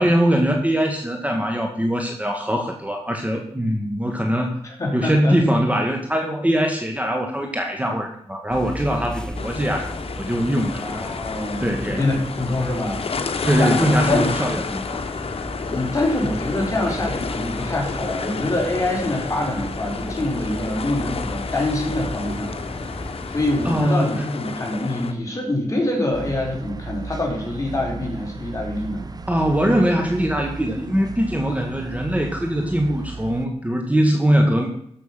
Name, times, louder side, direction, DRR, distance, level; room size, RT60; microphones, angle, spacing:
voice 1, 0.0-4.6 4.9-9.9 10.2-11.1 11.6-12.1 13.4-15.0 23.7-24.2 29.3-34.7, equal, 15° right, 2 dB, 1.8 m, -22 dB
voice 2, 4.6-5.4 10.8-13.1 13.3-14.2 15.7-22.5 23.3-29.0, left 1 dB, 30° left, -1 dB, 5.0 m, -25 dB
sound 1, 8.5-23.9, equal, 5° left, 0.9 m, -35 dB
sound 2, 9.3-25.1, left 5 dB, 65° left, 1.2 m, -31 dB
sound 3, 26.1-33.5, right 3 dB, 35° right, 1.0 m, -35 dB
13.0 x 7.1 x 5.7 m, 0.69 s
cardioid pair, 65°, 11 cm